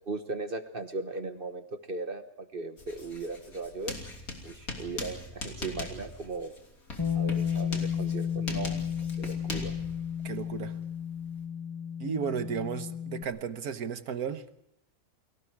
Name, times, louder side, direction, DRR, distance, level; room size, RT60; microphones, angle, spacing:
voice 1, 0.0-3.9 4.4-6.5 7.1-8.8 9.2-9.8, right 3 dB, 40° right, 8 dB, 1.3 m, -37 dB
Writing, 2.8-11.4, left 2 dB, 75° left, 3.7 m, -41 dB
Bass guitar, 7.0-13.2, left 8 dB, 20° left, 1.4 m, -33 dB
voice 2, 10.2-10.8 12.0-14.5, right 7 dB, 80° right, 10 dB, 1.7 m, -34 dB
30.0 x 22.5 x 4.7 m, 0.79 s
omnidirectional pair, 1.6 m